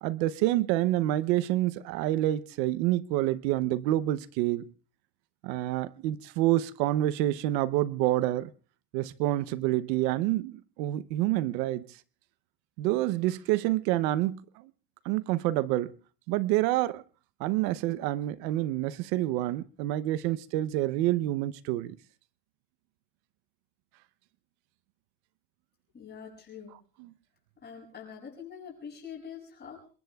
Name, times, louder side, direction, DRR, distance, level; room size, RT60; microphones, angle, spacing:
voice 1, 0.0-4.7 5.4-8.5 8.9-12.0 12.8-14.7 15.0-15.9 16.3-17.0 17.4-22.0, right 15 dB, 85° right, 0.9 m, -28 dB
voice 2, 25.9-26.8 27.6-29.9, left 7 dB, 20° left, 7.6 m, -44 dB
27.5 x 22.0 x 2.3 m
cardioid pair, 165°, 49 cm